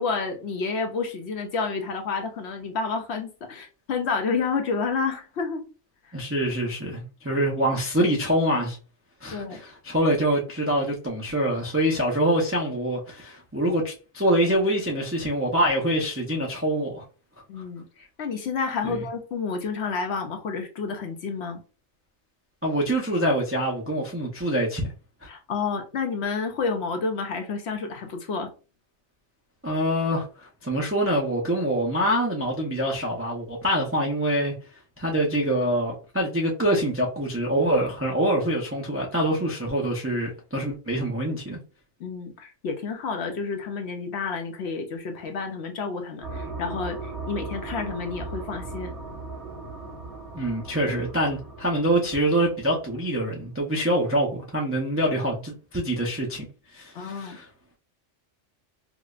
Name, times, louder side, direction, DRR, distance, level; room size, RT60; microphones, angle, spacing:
voice 1, 0.0-5.6 6.0-6.2 9.3-9.6 17.5-21.6 25.3-28.5 42.0-48.9 56.9-57.4, left 4 dB, 65° left, 0.8 m, -30 dB
voice 2, 6.1-8.8 9.2-17.0 18.8-19.0 22.6-24.9 29.6-34.5 35.0-41.6 50.3-56.5 56.7-57.5, right 1 dB, 20° right, 0.3 m, -25 dB
sound 1, 46.2-53.4, right 3 dB, 55° right, 1.8 m, -38 dB
4.7 x 2.0 x 2.4 m
omnidirectional pair, 1.4 m